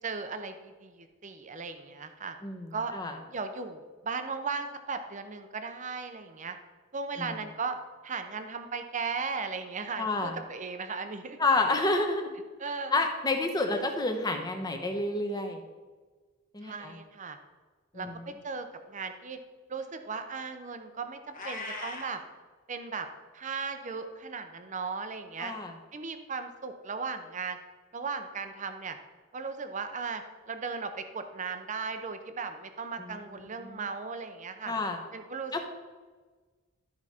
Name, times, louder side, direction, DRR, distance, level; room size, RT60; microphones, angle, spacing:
voice 1, 0.0-2.3 2.7-2.9 3.3-6.6 6.9-7.8 8.0-11.4 12.6-13.0 16.6-17.4 17.9-19.4 19.7-22.2 22.7-23.1 23.3-25.5 25.9-27.6 27.9-29.0 29.3-34.7 35.1-35.6, right 5 dB, 35° right, 8 dB, 0.6 m, -37 dB
voice 2, 2.4-3.1 7.2-7.3 10.0-10.4 11.4-12.3 12.9-15.6 16.5-16.9 17.9-18.3 25.4-25.7 33.0-33.3 33.6-33.8 34.7-35.0 35.5-35.6, left 2 dB, 20° left, 4 dB, 0.9 m, -29 dB
Meow, 21.3-22.2, left 3 dB, 40° left, 1.3 m, -39 dB
13.0 x 4.8 x 4.3 m, 1.4 s
head